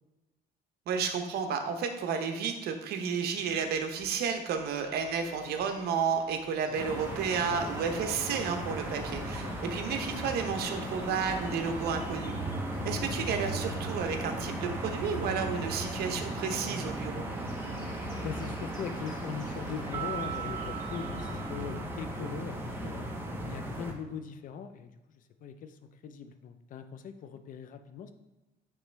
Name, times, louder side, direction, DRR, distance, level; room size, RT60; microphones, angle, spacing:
voice 1, 0.9-12.3 12.8-17.3, right 6 dB, 70° right, 5 dB, 0.8 m, -32 dB
sound 1, 4.5-21.5, left 1 dB, 25° left, 1.3 m, -53 dB
sound 2, 6.8-23.9, right 1 dB, 15° right, 0.9 m, -36 dB
voice 2, 9.1-9.6 13.1-13.4 18.2-23.1 23.5-28.1, left 7 dB, 50° left, 9 dB, 0.5 m, -41 dB
Piano, 19.9-22.5, right 12 dB, 35° right, 2.0 m, -40 dB
9.1 x 3.1 x 3.3 m, 1.1 s
cardioid pair, 110°, 17 cm